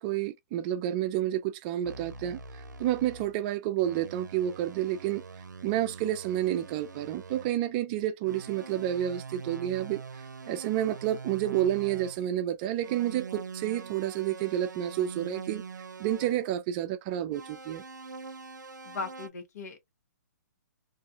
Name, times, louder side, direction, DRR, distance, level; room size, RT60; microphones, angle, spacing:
voice 1, 0.0-5.2 5.6-15.6 16.0-17.8, right 12 dB, 30° right, 0.4 m, -30 dB
sound 1, 1.8-3.4 3.8-7.6 8.2-12.3 12.8-16.4 17.3-19.3, right 5 dB, 85° right, 0.5 m, -44 dB
voice 2, 18.8-19.9, left 4 dB, 60° left, 1.0 m, -38 dB
2.5 x 2.3 x 2.5 m
hypercardioid pair, 130°, 10 cm